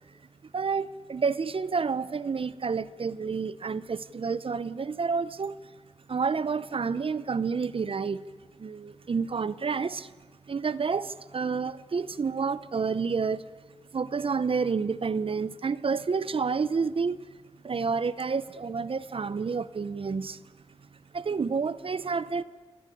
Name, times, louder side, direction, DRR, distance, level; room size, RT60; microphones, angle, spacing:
voice 1, 0.5-5.6 6.1-8.2 8.6-10.1 10.5-13.4 13.9-17.2 17.6-20.4 21.1-22.4, right 5 dB, 55° right, 18 dB, 0.8 m, -29 dB
28.0 x 21.0 x 10.0 m, 1.4 s
wide cardioid pair, 105°, 11 cm